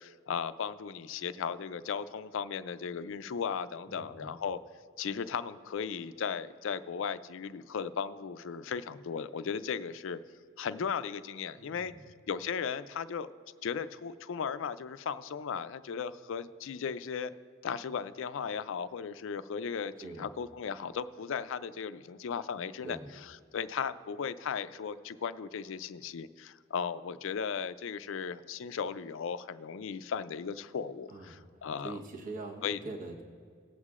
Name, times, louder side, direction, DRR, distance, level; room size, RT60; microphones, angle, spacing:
voice 1, 0.0-4.6 5.0-10.2 10.6-11.9 12.3-13.3 13.6-17.3 17.6-32.0 32.6-32.8, left 6 dB, 65° left, 13 dB, 0.4 m, -36 dB
voice 2, 3.9-4.3 11.6-12.0 20.0-20.3 22.8-23.2 31.1-31.5 31.8-33.2, right 2 dB, 40° right, -1 dB, 1.1 m, -43 dB
19.0 x 8.2 x 2.4 m, 2.1 s
head